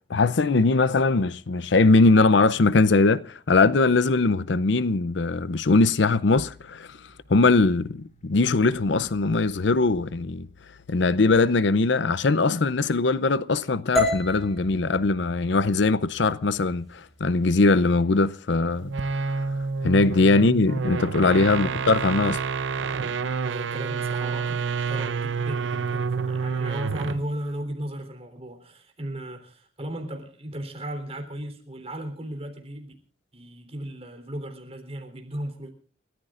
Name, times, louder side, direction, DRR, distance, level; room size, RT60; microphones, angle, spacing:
voice 1, 0.1-7.0 7.3-10.5 10.9-18.9 19.2-19.4 19.8-22.4, left 3 dB, 65° left, 0.6 m, -21 dB
sound 1, 6.4-11.3, left 1 dB, 40° left, 3.2 m, -53 dB
sound 2, 14.0-18.1, left 1 dB, ahead, 6.8 m, -32 dB
sound 3, 18.8-27.3, right 5 dB, 70° right, 0.6 m, -28 dB
voice 2, 23.1-32.9 33.3-35.7, right 1 dB, 30° right, 3.6 m, -36 dB
30.0 x 14.0 x 2.5 m
head